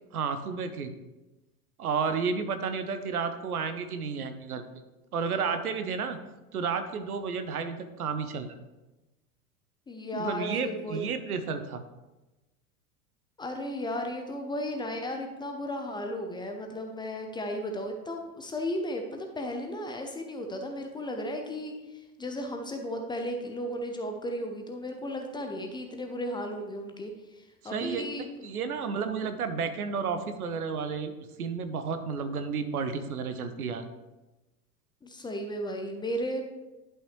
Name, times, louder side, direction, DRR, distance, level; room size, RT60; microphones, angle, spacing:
voice 1, 0.1-0.9 1.8-4.6 5.1-6.2 6.5-8.5 10.1-11.8 27.6-31.1 31.4-33.8, right 5 dB, 70° right, 9 dB, 0.9 m, -32 dB
voice 2, 9.9-11.0 13.4-28.3 35.0-36.4, equal, 10° left, 4 dB, 0.6 m, -35 dB
11.0 x 5.7 x 3.1 m, 1.1 s
figure-of-eight pair, 85°, 46 cm